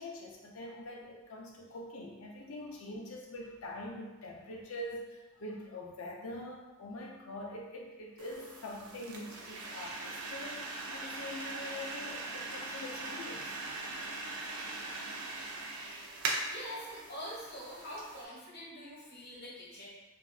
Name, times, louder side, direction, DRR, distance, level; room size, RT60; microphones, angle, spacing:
voice 1, 0.0-13.5, left 1 dB, 65° left, -1 dB, 0.5 m, -44 dB
sound 1, 8.2-18.2, right 2 dB, 85° right, 0.5 m, -41 dB
voice 2, 16.3-19.9, equal, 50° left, -7 dB, 1.2 m, -45 dB
3.4 x 2.6 x 2.3 m, 1.1 s
head